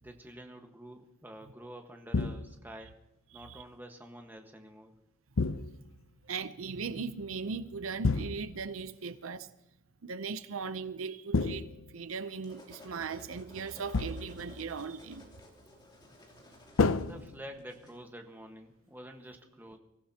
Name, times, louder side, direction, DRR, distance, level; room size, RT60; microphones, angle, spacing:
voice 1, 0.0-2.9 3.3-4.9 17.0-19.8, right 1 dB, 10° right, 1.4 m, -48 dB
sound 1, 2.1-2.8 5.4-6.0 8.0-8.7 11.3-12.3 13.9-14.5 16.8-17.9, left 4 dB, 75° left, 0.6 m, -31 dB
voice 2, 3.3-3.6 5.4-5.5 6.2-9.5 10.0-15.3, right 5 dB, 80° right, 0.7 m, -38 dB
sound 2, 12.1-18.0, left 1 dB, 20° left, 3.0 m, -55 dB
24.0 x 15.5 x 2.9 m
head